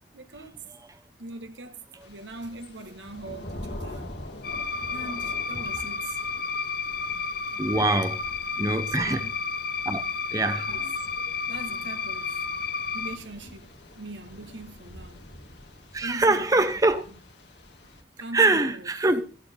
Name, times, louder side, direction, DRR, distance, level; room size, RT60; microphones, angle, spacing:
voice 1, 0.1-0.7 1.2-4.1 4.9-6.2 8.9-9.3 10.5-11.1 11.4-15.2 16.0-16.9 18.2-18.9, right 2 dB, 90° right, 1.8 m, -41 dB
Thunder / Rain, 2.0-18.0, left 1 dB, 70° left, 2.3 m, -45 dB
sound 1, 4.4-13.2, left 5 dB, 55° left, 0.8 m, -31 dB
voice 2, 7.6-8.2 8.6-9.2 9.9-10.0 10.3-10.6 15.9-17.0 18.3-19.2, right 2 dB, 20° right, 0.8 m, -23 dB
15.0 x 11.5 x 3.7 m
head